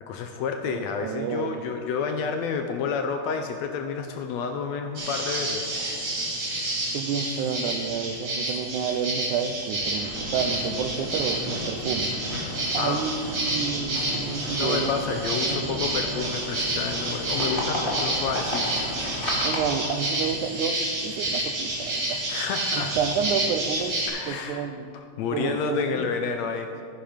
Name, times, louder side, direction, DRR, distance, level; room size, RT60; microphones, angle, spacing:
voice 1, 0.0-5.7 12.8-13.0 14.6-18.9 22.3-23.0 24.1-24.7 24.9-26.8, left 5 dB, 75° left, 6 dB, 1.7 m, -30 dB
voice 2, 0.7-1.6 6.9-12.1 12.7-14.9 15.5-15.8 19.4-20.8 21.0-22.2 22.7-24.0 24.2-24.9 25.3-26.1, right 7 dB, 85° right, 9 dB, 2.1 m, -30 dB
sound 1, 5.0-24.1, right 1 dB, 40° right, 3.6 m, -29 dB
sound 2, 10.0-19.7, left 1 dB, 20° left, 1.9 m, -34 dB
10.5 x 10.5 x 5.1 m, 2.3 s
omnidirectional pair, 3.5 m